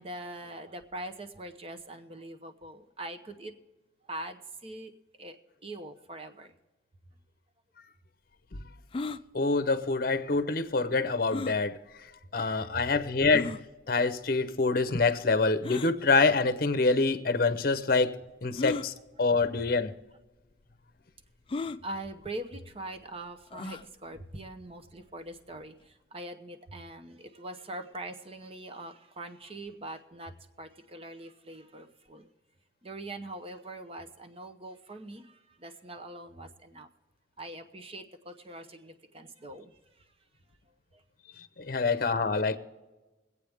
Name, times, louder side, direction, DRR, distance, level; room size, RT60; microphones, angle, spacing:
voice 1, 0.0-3.5 4.1-4.9 5.2-5.4 5.6-6.5 12.7-12.8 21.8-30.3 30.6-32.3 32.8-36.9 37.4-39.7, right 1 dB, 35° right, 0.9 m, -42 dB
sound 1, 8.9-9.2 11.3-11.6 12.4-12.5 13.3-13.6 15.6-15.9 17.0-17.1 18.5-18.9 19.8-19.9 20.2-20.3 21.5-21.8 23.5-23.9, left 3 dB, 30° left, 0.4 m, -35 dB
voice 2, 9.3-11.8 12.3-13.6 13.9-19.9 41.7-42.6, left 3 dB, 55° left, 0.8 m, -26 dB
23.0 x 8.4 x 3.5 m
head